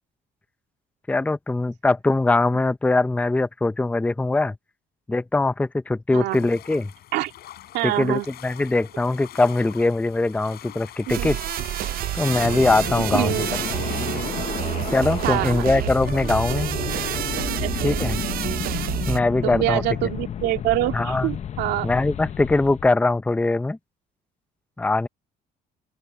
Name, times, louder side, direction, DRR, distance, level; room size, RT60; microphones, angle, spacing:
voice 1, 1.1-4.6 5.1-6.9 7.8-11.4 12.1-13.3 14.9-16.7 17.8-18.2 19.1-19.8 20.9-21.4 21.8-23.8 24.8-25.1, left 2 dB, 10° left, 0.6 m, -22 dB
sound 1, 6.3-17.2, left 13 dB, 70° left, 6.3 m, -43 dB
voice 2, 7.7-8.3 11.2-11.3 13.1-13.5 15.2-15.7 17.5-18.0 19.4-21.9, right 16 dB, 90° right, 2.4 m, -25 dB
sound 2, 11.1-19.2, right 14 dB, 60° right, 0.5 m, -28 dB
sound 3, 12.2-22.9, left 9 dB, 40° left, 0.8 m, -32 dB
open air
cardioid pair, 110°, 17 cm